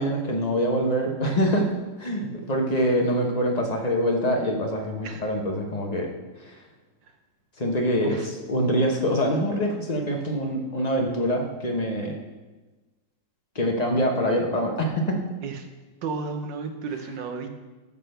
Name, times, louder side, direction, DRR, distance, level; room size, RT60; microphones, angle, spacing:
voice 1, 0.0-1.7 2.0-6.1 6.4-6.5 7.6-8.2 8.5-12.2 13.5-15.2, equal, 25° left, 1 dB, 1.1 m, -24 dB
voice 2, 16.0-17.5, right 5 dB, 75° right, 6 dB, 1.7 m, -33 dB
12.5 x 4.2 x 6.7 m, 1.2 s
omnidirectional pair, 2.0 m